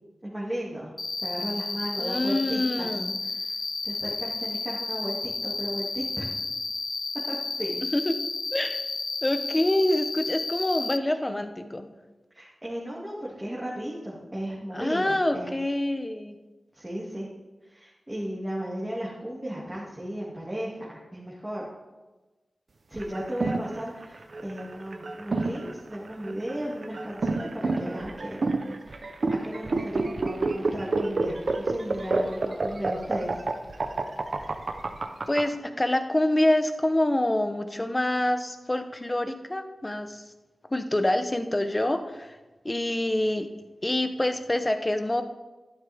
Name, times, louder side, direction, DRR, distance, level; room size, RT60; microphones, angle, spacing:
voice 1, 0.2-0.9 1.2-2.9 3.3-3.5 3.8-6.3 7.3-7.8 12.3-15.6 16.7-17.3 17.6-21.7 22.9-28.4 28.8-33.3, equal, 15° right, -6 dB, 2.3 m, -35 dB
Cricket, 1.0-11.0, left 3 dB, 55° left, 0.5 m, -32 dB
voice 2, 2.0-3.2 7.9-8.1 8.5-8.8 9.2-11.9 14.7-16.4 35.3-40.2 40.7-42.4 42.6-43.5 43.8-45.2, left 1 dB, 20° left, 8 dB, 0.9 m, -26 dB
sound 1, 23.0-35.4, right 3 dB, 55° right, 0.8 m, -28 dB
12.0 x 11.5 x 3.6 m, 1.2 s
wide cardioid pair, 80°, 0 cm